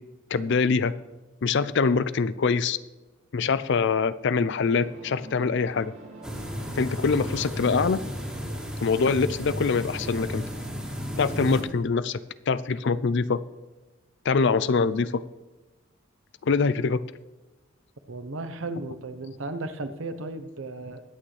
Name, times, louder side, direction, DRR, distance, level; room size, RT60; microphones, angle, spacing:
voice 1, 0.3-0.9 1.4-2.8 3.3-5.9 6.8-8.0 8.8-10.4 11.2-12.2 12.5-13.4 14.3-15.2 16.4-17.0, left 5 dB, 55° left, 16 dB, 0.4 m, -24 dB
Undersea Insomnia, 4.8-10.3, right 1 dB, 85° right, 2.4 m, -46 dB
sound 1, 6.2-11.6, equal, 5° right, 2.1 m, -34 dB
voice 2, 18.1-21.0, right 2 dB, 65° right, 10 dB, 0.9 m, -35 dB
21.5 x 8.6 x 3.3 m, 1.1 s
head